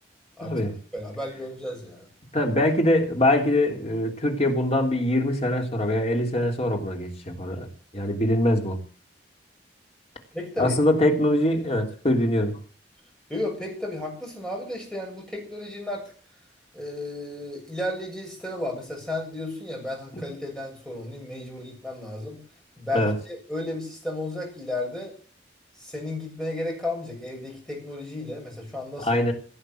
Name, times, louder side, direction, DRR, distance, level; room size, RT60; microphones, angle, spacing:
voice 1, 0.4-0.8 2.3-7.7 7.9-8.8 10.6-12.6 22.9-23.1 29.0-29.3, left 1 dB, 35° left, 3 dB, 3.3 m, -23 dB
voice 2, 0.9-2.1 10.3-10.8 13.3-16.0 16.7-22.4 22.8-25.1 25.8-29.2, left 1 dB, 5° left, -1 dB, 7.3 m, -33 dB
17.0 x 9.0 x 7.9 m, 0.41 s
head